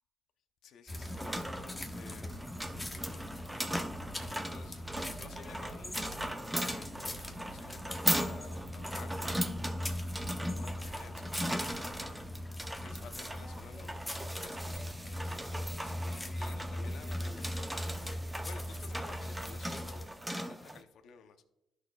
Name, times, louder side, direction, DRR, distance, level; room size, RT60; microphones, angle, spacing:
voice 1, 0.6-3.3 4.5-9.8 10.1-12.2 12.8-15.4 15.8-18.1 18.4-20.1 20.5-21.4, left 7 dB, 75° left, 8 dB, 0.7 m, -54 dB
sound 1, 0.9-20.0, left 1 dB, 10° left, 1.1 m, -41 dB
sound 2, 0.9-20.8, equal, 10° right, 0.7 m, -38 dB
13.0 x 6.3 x 2.3 m, 0.94 s
cardioid pair, 90°, 0 cm